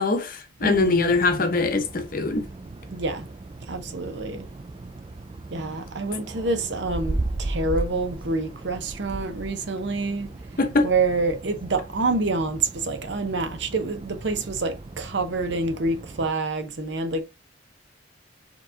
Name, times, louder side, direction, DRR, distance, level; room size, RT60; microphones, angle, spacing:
voice 1, 0.0-2.5 10.6-10.9, left 3 dB, 45° left, 0.8 m, -23 dB
sound 1, 0.6-16.3, right 2 dB, 25° right, 0.3 m, -36 dB
voice 2, 0.6-1.1 2.9-3.2 3.7-4.4 5.5-10.3 10.8-17.2, right 3 dB, 60° right, 0.7 m, -27 dB
4.6 x 3.0 x 3.7 m
head